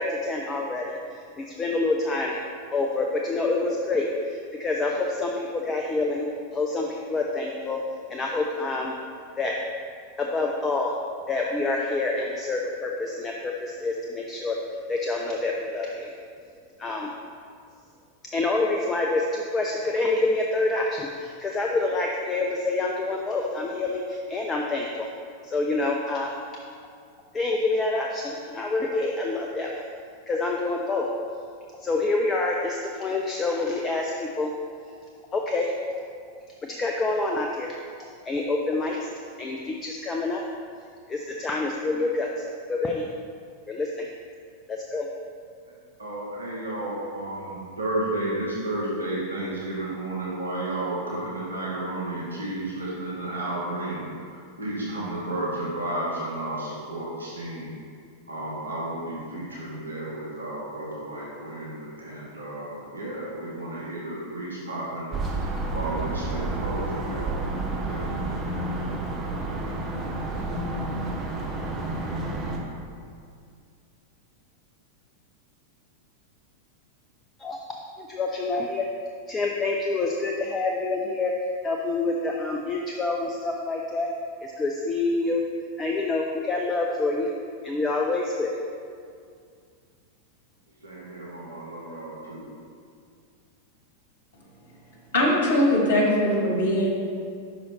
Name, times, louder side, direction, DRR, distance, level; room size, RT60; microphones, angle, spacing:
voice 1, 0.0-2.4 2.7-6.3 6.5-7.8 8.1-8.9 9.4-9.5 10.2-10.9 11.3-14.6 14.9-16.1 16.8-17.1 18.3-25.1 25.4-26.3 27.3-29.8 30.3-31.1 31.8-34.5 35.3-35.7 36.7-37.7 38.2-39.1 39.4-40.4 41.1-43.1 43.7-44.1 44.7-45.1 77.4-77.6 78.0-78.9 79.3-81.3 81.6-84.1 84.4-85.4 85.8-87.3 87.6-88.5, left 3 dB, 20° left, 0 dB, 0.5 m, -27 dB
voice 2, 46.0-54.3 54.6-57.7 58.3-65.1 65.7-67.3 67.8-68.0 90.8-92.5, right 1 dB, 75° right, -6 dB, 1.2 m, -32 dB
sound 1, 65.1-72.6, right 2 dB, 25° right, 0.8 m, -30 dB
voice 3, 95.1-96.9, left 1 dB, 55° left, -1 dB, 1.3 m, -21 dB
5.6 x 5.1 x 4.0 m, 2.2 s
figure-of-eight pair, 90°, 0 cm